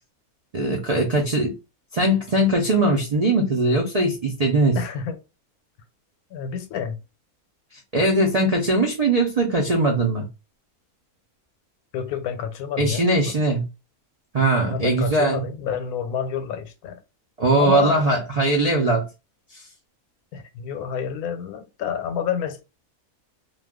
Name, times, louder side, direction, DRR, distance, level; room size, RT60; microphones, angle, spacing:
voice 1, 0.5-1.5 1.9-4.8 7.9-10.3 12.8-13.6 14.3-15.4 17.4-19.1 19.5-19.6, right 2 dB, 75° right, 0.3 m, -20 dB
voice 2, 4.8-5.2 6.3-7.0 11.9-13.4 14.7-17.0 17.6-18.1 20.3-22.6, left 7 dB, 90° left, 1.1 m, -29 dB
2.4 x 2.2 x 3.5 m
omnidirectional pair, 1.5 m